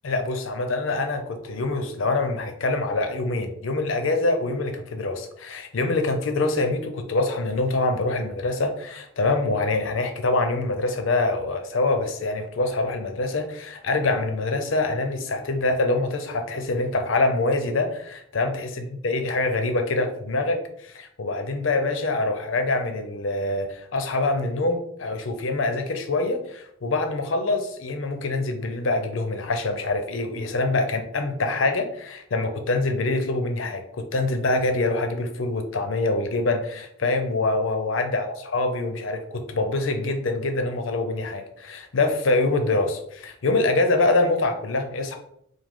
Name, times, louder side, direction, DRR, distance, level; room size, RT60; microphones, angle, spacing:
voice 1, 0.0-45.1, left 2 dB, 80° left, 6 dB, 0.6 m, -25 dB
4.9 x 2.1 x 3.6 m, 0.71 s
head